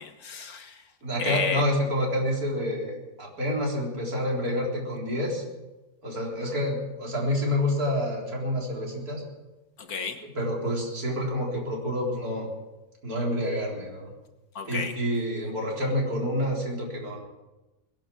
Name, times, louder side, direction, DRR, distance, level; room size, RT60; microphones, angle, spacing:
voice 1, 0.0-0.8 1.2-1.6 9.8-10.2 14.6-14.9, left 5 dB, 65° left, 7 dB, 1.8 m, -31 dB
voice 2, 1.0-5.4 6.0-9.2 10.4-12.5 13.0-14.1 14.7-17.2, left 1 dB, 65° right, -2 dB, 4.4 m, -28 dB
22.0 x 10.5 x 6.2 m, 1.0 s
omnidirectional pair, 1.7 m